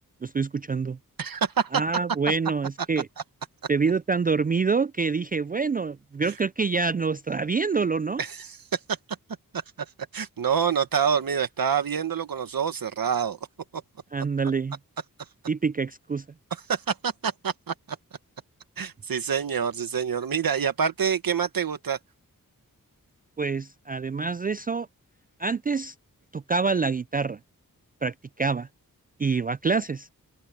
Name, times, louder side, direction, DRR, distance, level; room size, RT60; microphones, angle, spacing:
voice 1, 0.2-1.0 1.7-3.1 3.7-8.2 14.1-14.8 15.5-16.2 23.4-24.9 25.4-25.9 26.3-27.4 28.0-28.7 29.2-30.1, right 4 dB, 25° right, 0.3 m, -26 dB
voice 2, 1.2-1.8 6.3-6.4 8.2-8.8 10.1-13.4 13.7-13.8 16.5-17.7 18.8-22.0, right 7 dB, 80° right, 1.6 m, -26 dB
open air
wide cardioid pair, 70°, 34 cm